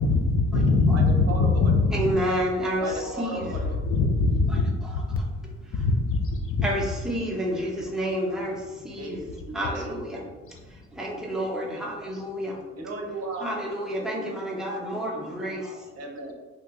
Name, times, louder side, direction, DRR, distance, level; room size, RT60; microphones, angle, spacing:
voice 1, 0.0-2.0 3.8-5.2 5.7-6.7, left 3 dB, 45° left, 3 dB, 0.5 m, -22 dB
voice 2, 0.9-1.7 2.8-3.8 9.0-9.1 9.4-10.1 12.7-13.5 16.0-16.3, right 2 dB, 55° right, 0 dB, 0.8 m, -35 dB
voice 3, 1.9-3.6 4.5-5.0 5.6-5.9 6.6-9.2 9.5-10.2 10.7-12.6 13.4-15.9, equal, ahead, -4 dB, 0.8 m, -30 dB
2.9 x 2.2 x 3.6 m, 1.3 s
cardioid pair, 90°, 30 cm